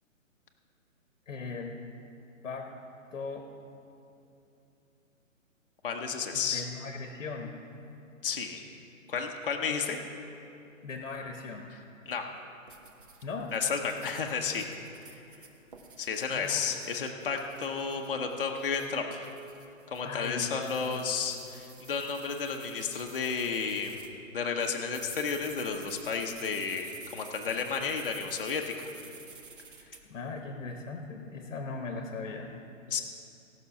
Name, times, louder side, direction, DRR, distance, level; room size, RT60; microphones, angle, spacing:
voice 1, 1.3-1.8 2.4-2.7 3.1-3.5 6.3-7.6 10.8-11.7 13.2-13.5 16.3-16.7 20.0-20.5 20.9-21.2 30.1-32.6, left 4 dB, 70° left, 3 dB, 1.2 m, -38 dB
voice 2, 5.8-6.7 8.2-8.6 9.1-10.0 12.1-12.2 13.5-14.7 16.0-19.3 19.9-24.0 24.3-28.9 32.9-33.0, left 5 dB, 40° left, 2 dB, 0.8 m, -32 dB
sound 1, 12.7-24.1 24.6-30.0, right 5 dB, 40° right, 0.9 m, -51 dB
17.5 x 6.0 x 5.8 m, 2.8 s
hypercardioid pair, 175°, 41 cm